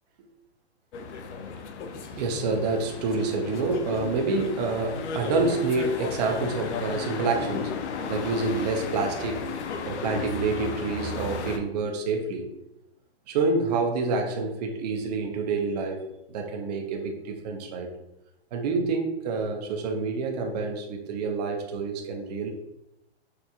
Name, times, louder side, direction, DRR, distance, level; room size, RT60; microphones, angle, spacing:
sound 1, 0.9-11.6, left 5 dB, 85° left, 0.5 m, -34 dB
voice 1, 1.9-7.7 8.1-9.4 9.9-12.5 13.3-17.9 18.5-22.5, right 4 dB, 40° right, 2 dB, 0.6 m, -28 dB
4.4 x 2.4 x 2.3 m, 0.87 s
hypercardioid pair, 150°, 33 cm